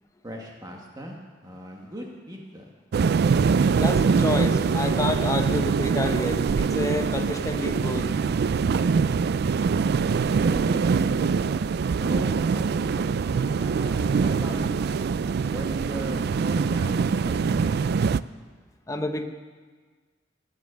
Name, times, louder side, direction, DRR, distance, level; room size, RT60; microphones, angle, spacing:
voice 1, 0.2-1.2 1.4-2.7 10.4-11.4 12.0-14.8 15.5-17.7, equal, 20° right, 0 dB, 1.5 m, -38 dB
sound 1, 2.9-18.2, right 5 dB, 60° right, 0.3 m, -23 dB
voice 2, 3.8-8.1 18.9-19.3, left 2 dB, 15° left, 5 dB, 0.9 m, -29 dB
18.0 x 9.5 x 6.7 m, 1.4 s
head